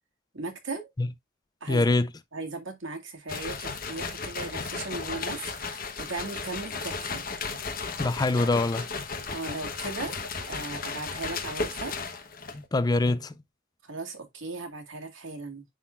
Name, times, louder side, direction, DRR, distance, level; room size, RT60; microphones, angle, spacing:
voice 1, 0.3-0.9 1.6-1.9 2.3-7.2 9.3-10.2 10.5-12.0 13.8-15.6, right 3 dB, 75° right, 2.0 m, -37 dB
voice 2, 1.7-2.1 8.0-8.9 12.5-13.3, left 2 dB, 20° left, 0.4 m, -24 dB
sound 1, 3.3-12.6, left 4 dB, 45° left, 1.1 m, -35 dB
10.0 x 3.9 x 2.4 m
head